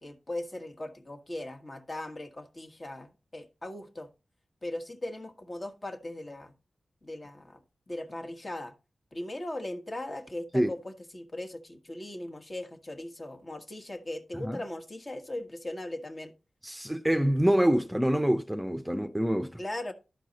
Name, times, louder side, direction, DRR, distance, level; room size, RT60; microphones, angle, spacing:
voice 1, 0.0-4.1 4.6-6.5 7.0-7.6 7.9-8.7 9.1-16.3 19.6-19.9, left 1 dB, 40° left, 1.5 m, -39 dB
voice 2, 16.6-19.6, equal, 5° right, 0.7 m, -26 dB
11.5 x 4.6 x 4.1 m
cardioid pair, 45°, 0 cm